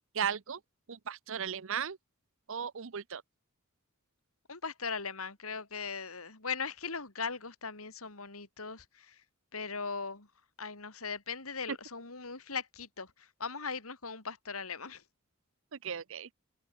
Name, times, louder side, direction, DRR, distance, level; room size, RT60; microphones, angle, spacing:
voice 1, 0.1-0.6 0.9-2.0 2.5-3.2 11.7-11.8 15.7-16.3, right 7 dB, 65° right, 0.7 m, -36 dB
voice 2, 4.5-9.2 9.5-10.3 10.6-15.0, left 5 dB, 85° left, 4.2 m, -39 dB
head